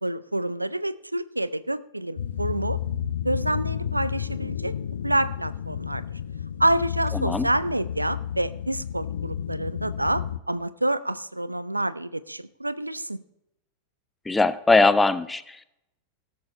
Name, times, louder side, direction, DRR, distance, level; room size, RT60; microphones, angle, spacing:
voice 1, 0.0-2.8 3.2-4.7 5.0-6.2 6.6-13.2, right 1 dB, 85° right, 17 dB, 0.5 m, -27 dB
sound 1, 2.2-10.4, left 9 dB, 65° left, 0.6 m, -31 dB
voice 2, 7.1-7.5 14.3-15.6, left 3 dB, 10° left, 14 dB, 0.6 m, -20 dB
18.0 x 7.6 x 4.2 m, 0.81 s
figure-of-eight pair, 90°, 0 cm